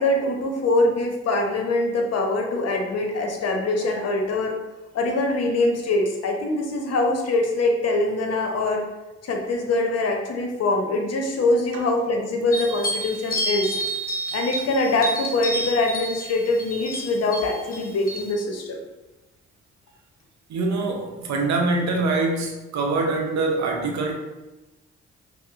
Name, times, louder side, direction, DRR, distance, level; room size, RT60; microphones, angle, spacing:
voice 1, 0.0-4.6 4.9-8.8 9.2-13.8 14.3-18.8, left 2 dB, 50° left, 2 dB, 0.8 m, -23 dB
sound 1, 12.5-18.3, right 1 dB, 25° left, 1.0 m, -30 dB
voice 2, 20.5-24.2, right 3 dB, 55° right, 2 dB, 0.8 m, -24 dB
5.3 x 2.1 x 2.5 m, 1.1 s
hypercardioid pair, 40°, 33 cm